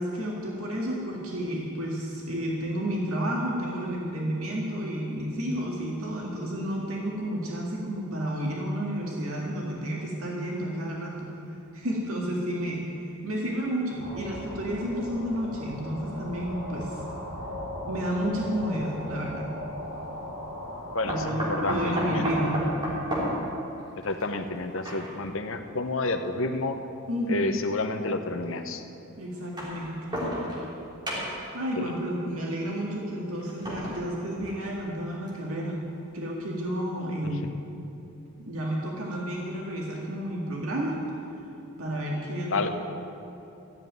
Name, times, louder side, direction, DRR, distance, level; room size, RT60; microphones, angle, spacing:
voice 1, 0.0-11.4 11.7-12.8 13.2-17.0 17.8-19.5 21.1-21.4 21.7-22.6 27.1-27.5 29.2-30.1 31.5-35.8 36.1-37.5 38.4-41.0 41.8-42.7, equal, 80° right, -3 dB, 2.0 m, -31 dB
sound 1, 14.0-21.2, left 1 dB, 60° right, 3.9 m, -38 dB
sound 2, 18.7-18.8 21.1-25.4 26.3-26.4 27.6-27.7 29.3-30.8 31.1-31.6 33.4-34.8 35.3-35.4 35.7-35.8, equal, 20° right, 3.4 m, -32 dB
voice 2, 20.9-22.3 24.0-26.8 27.3-28.8 31.8-31.9 42.5-42.7, left 2 dB, 65° left, 7 dB, 0.9 m, -29 dB
14.0 x 7.6 x 9.4 m, 2.9 s
head